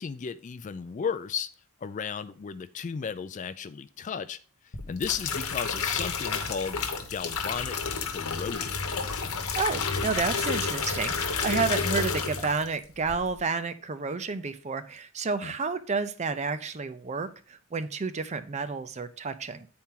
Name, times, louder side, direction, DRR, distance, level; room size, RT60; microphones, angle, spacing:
voice 1, 0.0-1.5 1.8-4.4 4.9-6.8 7.1-8.8 15.4-15.5, left 6 dB, 35° left, 13 dB, 0.3 m, -34 dB
sound 1, 4.7-12.7 13.0-13.4, left 5 dB, 80° left, 1.0 m, -30 dB
voice 2, 9.6-19.7, right 4 dB, 30° right, 11 dB, 0.5 m, -30 dB
9.3 x 4.3 x 3.6 m, 0.39 s
head